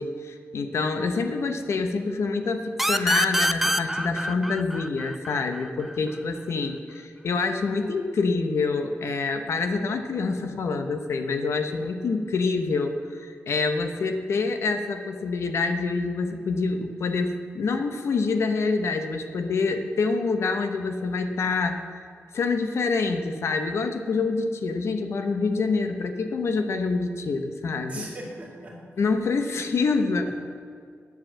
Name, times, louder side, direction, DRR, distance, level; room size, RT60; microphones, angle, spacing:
voice 1, 0.0-21.8 22.3-28.1 29.0-30.3, left 4 dB, 65° left, 6 dB, 0.8 m, -26 dB
sound 1, 2.8-6.2, equal, 5° right, 0.4 m, -26 dB
voice 2, 27.9-28.8 29.4-29.6 30.2-30.3, right 1 dB, 25° right, -3 dB, 2.2 m, -40 dB
9.2 x 7.8 x 7.4 m, 2.3 s
wide cardioid pair, 175°, 5 cm